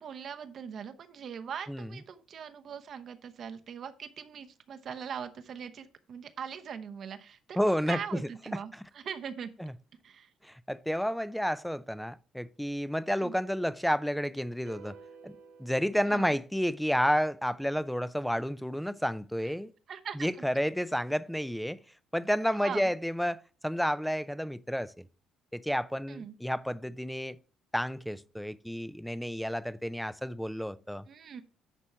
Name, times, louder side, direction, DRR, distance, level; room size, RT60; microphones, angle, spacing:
voice 1, 0.0-9.5 10.0-10.3 13.2-13.3 16.1-16.4 19.4-19.5 19.9-20.4 22.6-22.9 26.1-26.4 31.1-31.4, right 7 dB, 55° right, 0.8 m, -41 dB
voice 2, 7.6-8.0 9.6-9.7 10.4-15.0 15.2-15.3 15.6-19.7 20.2-21.8 22.1-25.1 25.5-27.4 27.7-31.0, equal, ahead, 0.5 m, -30 dB
sound 1, 14.7-17.0, right 5 dB, 70° right, 1.7 m, -53 dB
10.0 x 4.3 x 4.5 m
hypercardioid pair, 50°, 0 cm